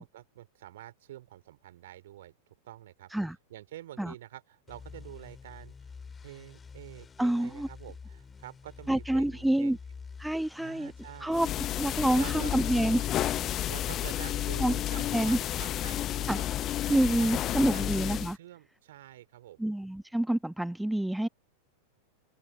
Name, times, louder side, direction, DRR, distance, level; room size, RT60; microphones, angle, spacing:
voice 1, 0.0-2.4 2.6-3.1 3.5-5.9 6.2-9.8 10.6-11.4 12.1-12.5 13.7-16.4 17.2-17.9 18.3-19.7, right 13 dB, 55° right, 3.0 m, -47 dB
sound 1, 4.7-17.2, left 5 dB, 15° left, 2.4 m, -48 dB
voice 2, 7.2-7.7 8.9-9.8 10.2-10.9 11.2-11.5 11.8-13.1 14.6-14.7 15.1-15.4 16.3-16.4 16.9-18.4 19.6-21.3, right 1 dB, 5° right, 0.5 m, -27 dB
sound 2, 11.3-18.3, left 12 dB, 30° left, 0.9 m, -31 dB
figure-of-eight pair, 90°, 0 cm